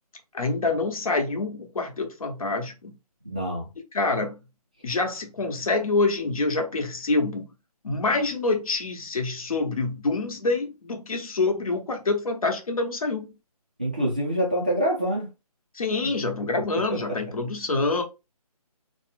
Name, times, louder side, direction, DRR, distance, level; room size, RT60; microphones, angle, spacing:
voice 1, 0.3-3.0 3.9-4.4 4.8-7.5 7.8-13.3 15.7-18.0, left 3 dB, 65° left, 1.1 m, -26 dB
voice 2, 3.3-3.7 13.8-15.3 16.0-16.1 16.9-17.2, equal, 15° right, 0.3 m, -26 dB
4.2 x 2.0 x 3.4 m
figure-of-eight pair, 160°, 20 cm